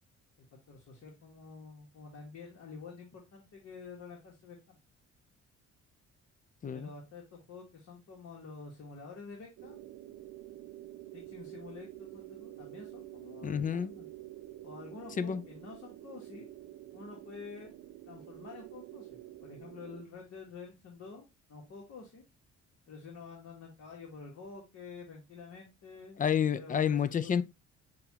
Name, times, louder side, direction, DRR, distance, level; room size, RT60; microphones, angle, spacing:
voice 1, 0.4-4.8 6.7-9.8 11.1-14.1 14.6-16.5 16.9-17.7 18.1-22.2 22.9-26.2 26.5-27.4, left 4 dB, 55° left, 1.3 m, -49 dB
sound 1, 9.6-20.0, right 15 dB, 70° right, 0.5 m, -48 dB
voice 2, 13.4-13.9 15.2-15.4 26.2-27.4, left 8 dB, 30° left, 0.4 m, -29 dB
6.6 x 2.4 x 2.8 m
cardioid pair, 90°, 30 cm